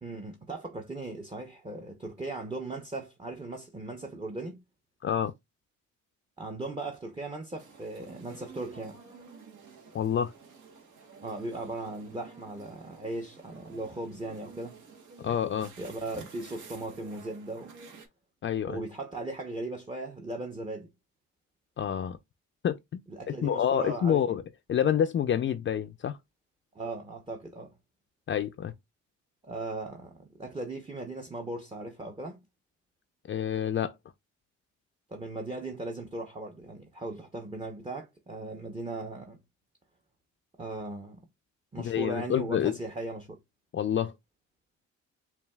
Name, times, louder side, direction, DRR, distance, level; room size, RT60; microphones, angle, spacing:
voice 1, 0.0-4.6 6.4-9.0 11.2-14.8 15.8-17.8 18.7-20.9 23.1-24.3 26.7-27.7 29.4-32.4 35.1-39.4 40.6-41.3 41.7-43.4, right 2 dB, 20° right, 0.8 m, -38 dB
sound 1, 7.6-18.1, right 5 dB, 75° right, 1.2 m, -51 dB
voice 2, 9.9-10.3 15.2-15.7 18.4-18.8 21.8-22.2 22.6-23.0 23.4-24.4 24.7-26.2 28.3-28.7 33.3-34.0 41.8-42.8 43.7-44.1, left 9 dB, 40° left, 0.4 m, -28 dB
7.0 x 2.4 x 2.2 m
cardioid pair, 90°, 30 cm